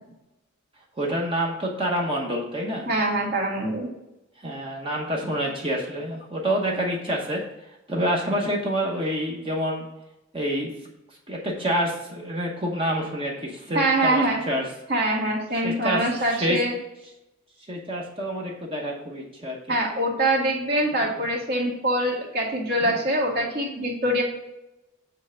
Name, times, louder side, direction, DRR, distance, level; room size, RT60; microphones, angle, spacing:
voice 1, 1.0-2.9 4.4-7.4 7.9-9.9 10.3-10.7 11.3-14.6 15.6-16.6 17.7-19.6 21.0-21.1, equal, 25° right, -2 dB, 1.0 m, -27 dB
voice 2, 2.9-3.9 13.7-14.4 14.9-16.8 19.7-24.2, right 1 dB, 50° right, -3 dB, 2.1 m, -24 dB
8.1 x 3.3 x 6.3 m, 0.91 s
head